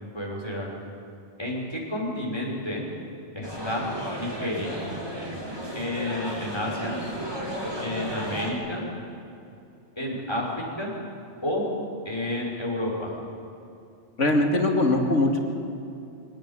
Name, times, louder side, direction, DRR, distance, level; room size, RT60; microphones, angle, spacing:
voice 1, 0.1-0.7 1.4-2.9 3.3-3.9 4.2-4.7 5.7-7.0 7.8-8.9 10.0-10.9 11.4-11.6 12.0-13.1, left 1 dB, 20° left, -3 dB, 5.8 m, -30 dB
sound 1, 3.4-8.5, equal, 20° right, 3.5 m, -34 dB
voice 2, 14.2-15.4, left 2 dB, 85° left, 3 dB, 2.8 m, -21 dB
23.5 x 18.0 x 8.9 m, 2.6 s
omnidirectional pair, 1.2 m